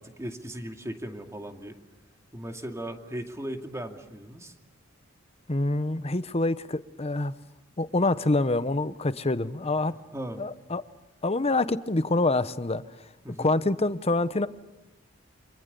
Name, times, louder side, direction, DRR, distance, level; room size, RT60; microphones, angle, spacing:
voice 1, 0.0-1.8 2.3-4.5 9.9-10.4 13.2-13.5, right 1 dB, 15° right, 4 dB, 2.5 m, -37 dB
voice 2, 5.5-7.3 7.8-9.9 10.4-10.8 11.2-12.8 13.4-14.5, left 2 dB, 30° left, 13 dB, 1.0 m, -26 dB
28.5 x 26.0 x 6.9 m, 1.0 s
head